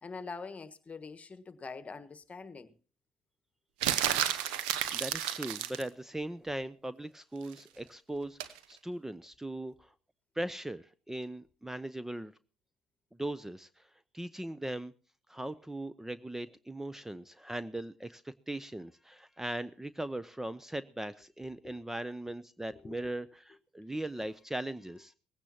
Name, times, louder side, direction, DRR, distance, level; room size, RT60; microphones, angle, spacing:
voice 1, 0.0-2.7 21.6-21.7 22.7-23.0, left 4 dB, 30° left, 1.4 m, -44 dB
sound 1, 3.8-5.9 8.4-8.6, right 11 dB, 75° right, 0.9 m, -31 dB
voice 2, 4.9-9.9 10.3-12.3 13.1-14.9 15.3-25.1, right 1 dB, 10° right, 0.6 m, -39 dB
19.0 x 16.0 x 2.9 m
hypercardioid pair, 50°, 4 cm